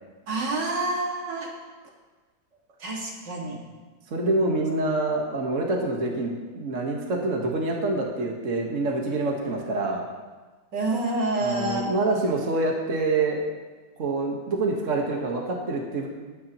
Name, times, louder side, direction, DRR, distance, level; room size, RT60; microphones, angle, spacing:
voice 1, 0.3-1.5 2.8-3.6 10.7-11.9, right 2 dB, 80° right, -2 dB, 2.7 m, -28 dB
voice 2, 4.1-10.0 11.4-13.4 14.0-16.1, right 2 dB, 50° right, 0 dB, 1.7 m, -26 dB
20.0 x 10.0 x 3.0 m, 1.3 s
omnidirectional pair, 1.9 m